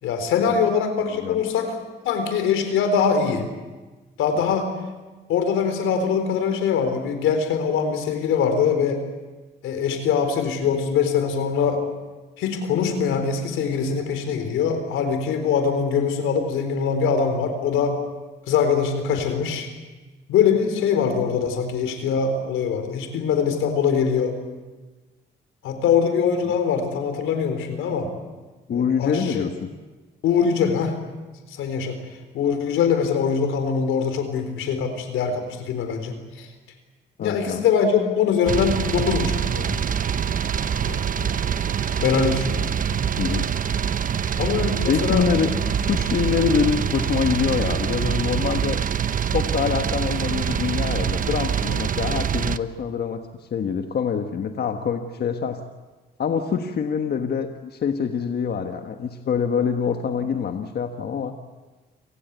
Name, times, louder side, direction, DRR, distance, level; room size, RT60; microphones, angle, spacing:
voice 1, 0.0-1.8 2.0-3.5 4.2-4.7 5.3-9.0 9.6-11.8 12.4-18.0 18.5-19.7 20.3-24.4 25.6-28.1 28.7-29.5 30.2-31.0 31.5-32.0 32.3-36.5 37.2-39.8 40.9-41.3 42.0-42.7 44.4-45.2, left 6 dB, 85° left, 7 dB, 4.0 m, -23 dB
voice 2, 28.7-29.7 37.2-37.6 43.2-43.5 44.9-45.5 45.9-48.8 49.3-53.2 53.5-55.6 56.2-61.3, left 6 dB, 55° left, 6 dB, 1.5 m, -25 dB
sound 1, 38.5-52.6, right 8 dB, 45° right, 0.9 m, -25 dB
28.5 x 18.5 x 8.2 m, 1.2 s
cardioid pair, 90°, 20 cm